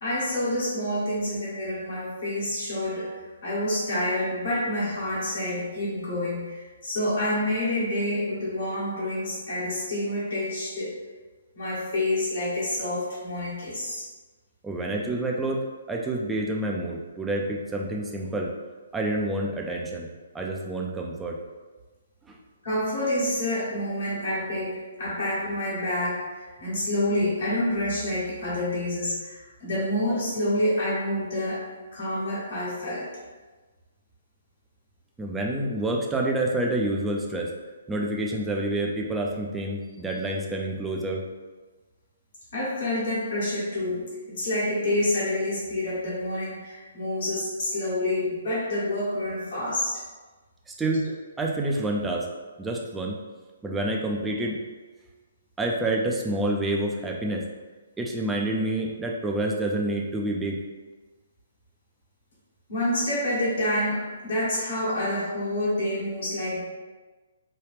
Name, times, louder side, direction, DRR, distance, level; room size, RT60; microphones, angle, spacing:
voice 1, 0.0-10.9 11.5-14.0 22.6-31.6 31.9-33.1 42.5-50.0 62.7-66.6, left 1 dB, 55° left, -7 dB, 1.3 m, -28 dB
voice 2, 14.6-15.6 15.9-18.5 18.9-20.1 20.3-21.4 22.3-22.4 35.2-37.5 37.9-41.2 50.7-51.1 51.4-52.3 52.6-53.2 53.6-54.6 55.6-57.5 58.0-60.6, right 1 dB, 10° right, -1 dB, 0.4 m, -28 dB
3.1 x 2.3 x 3.3 m, 1.3 s
figure-of-eight pair, 130°, 0 cm